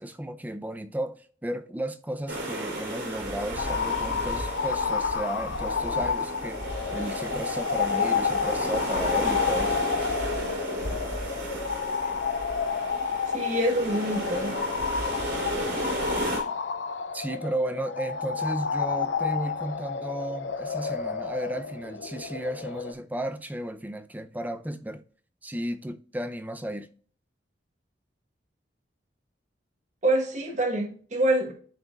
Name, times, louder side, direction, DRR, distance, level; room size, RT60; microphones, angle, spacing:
voice 1, 0.0-6.7 6.9-9.7 17.1-25.0 25.4-26.9, right 1 dB, 10° right, 0.5 m, -34 dB
sound 1, 2.3-16.4, right 1 dB, 85° right, 3.4 m, -33 dB
sound 2, 3.6-22.9, left 6 dB, 80° left, 0.6 m, -30 dB
voice 2, 13.3-14.5 30.0-31.5, right 1 dB, 40° right, 1.3 m, -26 dB
12.5 x 4.3 x 2.4 m
head